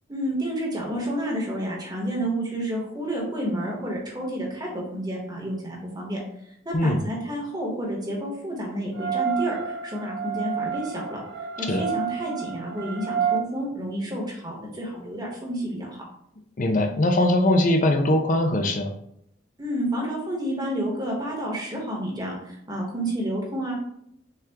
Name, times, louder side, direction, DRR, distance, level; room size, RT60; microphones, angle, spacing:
voice 1, 0.1-6.2 6.6-11.2 11.6-16.0 19.6-23.7, right 1 dB, 20° right, -3 dB, 1.3 m, -30 dB
sound 1, 8.9-13.4, right 8 dB, 65° right, 0.5 m, -29 dB
voice 2, 16.6-18.9, left 1 dB, 45° left, 4 dB, 0.5 m, -21 dB
5.5 x 2.4 x 3.6 m, 0.73 s
head